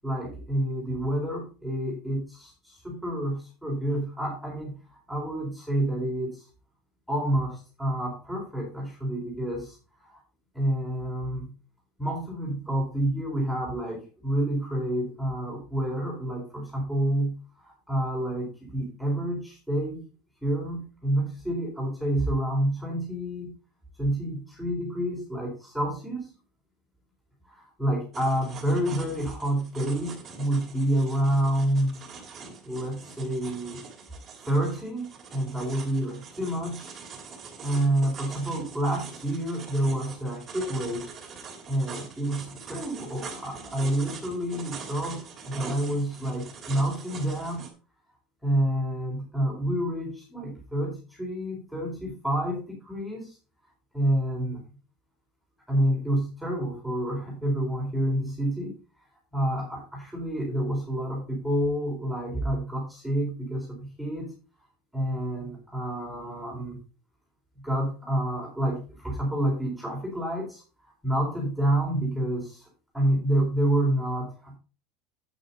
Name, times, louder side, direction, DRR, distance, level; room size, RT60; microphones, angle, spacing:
voice 1, 0.0-6.5 7.1-9.8 10.0-10.2 10.5-11.5 12.0-20.1 20.4-23.5 24.0-26.3 27.5-32.0 32.6-33.8 34.4-36.9 37.3-41.1 41.7-47.6 48.4-53.4 53.9-54.6 55.7-58.8 59.3-64.3 64.9-66.8 67.6-72.7 72.9-74.6, right 1 dB, ahead, -4 dB, 4.1 m, -28 dB
sound 1, 28.1-47.7, right 5 dB, 25° right, 2.6 m, -43 dB
9.1 x 8.9 x 4.2 m, 0.34 s
supercardioid pair, 155°, 0 cm